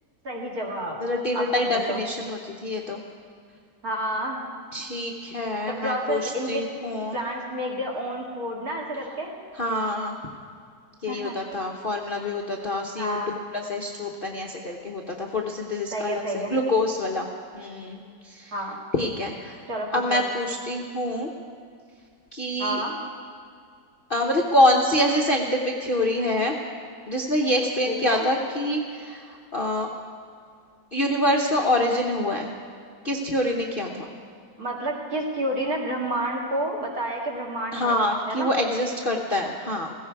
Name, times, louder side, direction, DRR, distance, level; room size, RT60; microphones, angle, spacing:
voice 1, 0.2-1.0 1.3-2.0 3.8-4.4 5.6-6.7 7.1-9.3 11.1-11.4 13.0-13.3 15.9-16.6 18.5-18.8 19.7-20.2 22.6-23.0 27.9-28.3 34.6-37.9 38.3-38.6, right 1 dB, 50° right, -1 dB, 2.4 m, -29 dB
voice 2, 1.0-3.0 4.7-7.2 9.6-10.1 11.0-13.2 13.5-17.3 17.5-18.5 18.9-19.6 19.9-21.3 22.3-22.8 24.1-26.5 27.1-29.9 30.9-32.5 33.0-34.1 37.7-39.9, left 1 dB, 40° left, 0 dB, 0.8 m, -26 dB
16.0 x 15.0 x 4.6 m, 2.2 s
omnidirectional pair, 2.0 m